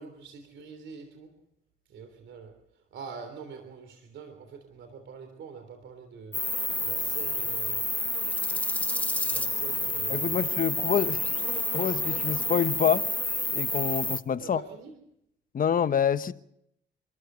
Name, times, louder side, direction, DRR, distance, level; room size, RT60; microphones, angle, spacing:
voice 1, 0.0-1.4 1.9-6.4 6.8-7.9 8.9-9.0 9.3-10.5 14.4-14.9, right 5 dB, 70° right, 3.3 m, -45 dB
sound 1, 6.3-14.2, left 1 dB, 5° left, 1.6 m, -29 dB
voice 2, 10.1-11.2 11.7-13.1 13.5-14.6 15.5-16.3, left 8 dB, 45° left, 1.1 m, -26 dB
26.0 x 13.5 x 8.0 m
cardioid pair, 90°, 20 cm